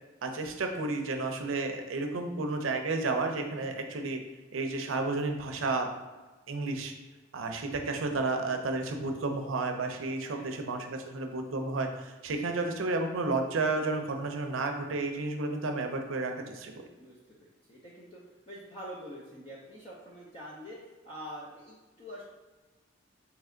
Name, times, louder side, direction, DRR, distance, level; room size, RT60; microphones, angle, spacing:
voice 1, 0.2-4.2 4.5-5.9 6.5-6.9 7.3-16.8, right 3 dB, 85° right, 5 dB, 0.5 m, -32 dB
voice 2, 17.0-20.8 21.0-22.3, equal, 25° left, -7 dB, 0.6 m, -46 dB
3.3 x 3.0 x 3.7 m, 1.2 s
head